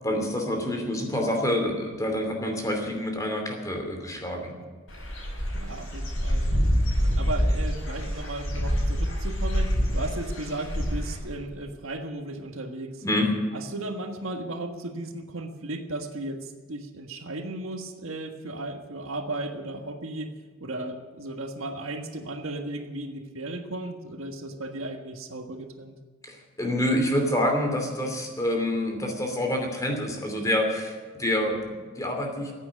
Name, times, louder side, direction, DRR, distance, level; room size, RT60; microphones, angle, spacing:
voice 1, 0.0-4.5 13.0-13.3 26.2-32.5, left 1 dB, 15° left, 2 dB, 2.8 m, -27 dB
Dog / Bird, 4.9-11.2, equal, 75° left, 6.0 m, -26 dB
voice 2, 5.5-6.5 7.0-13.0 13.5-20.3 20.6-25.9, right 2 dB, 75° right, 5 dB, 1.6 m, -35 dB
15.5 x 8.9 x 9.6 m, 1.4 s
head